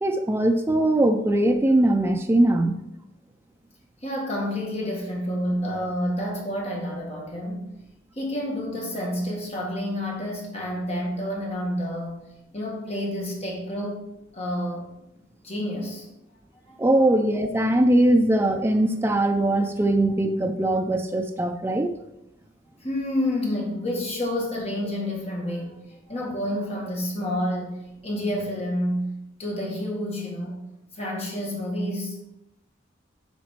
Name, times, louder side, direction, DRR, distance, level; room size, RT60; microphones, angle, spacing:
voice 1, 0.0-2.8 16.8-22.0, right 1 dB, 10° right, 4 dB, 0.4 m, -21 dB
voice 2, 4.0-7.7 8.1-12.2 12.5-14.0 14.3-14.9 15.4-16.1 16.7-16.8 22.8-29.1 29.4-30.6 30.9-32.2, left 1 dB, 35° left, -2 dB, 1.9 m, -29 dB
8.6 x 5.1 x 4.5 m, 0.88 s
head